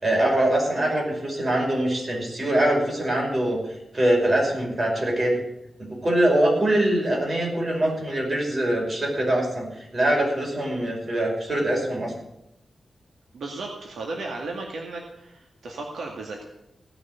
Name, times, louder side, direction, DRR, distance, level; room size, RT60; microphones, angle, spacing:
voice 1, 0.0-3.6 3.9-5.4 6.0-12.1, right 1 dB, 30° right, -2 dB, 5.7 m, -23 dB
voice 2, 13.3-16.4, right 3 dB, 85° right, 0 dB, 2.2 m, -35 dB
17.0 x 6.5 x 9.6 m, 0.85 s
wide cardioid pair, 130°, 0 cm